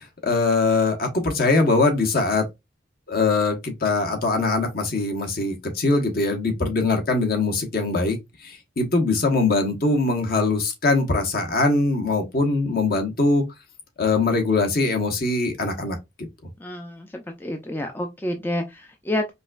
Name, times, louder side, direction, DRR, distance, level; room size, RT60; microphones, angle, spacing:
voice 1, 0.0-2.4 3.1-13.4 14.0-16.0, left 3 dB, 55° left, 1.1 m, -22 dB
voice 2, 16.6-19.3, left 1 dB, 10° left, 0.4 m, -29 dB
5.2 x 2.3 x 2.4 m
head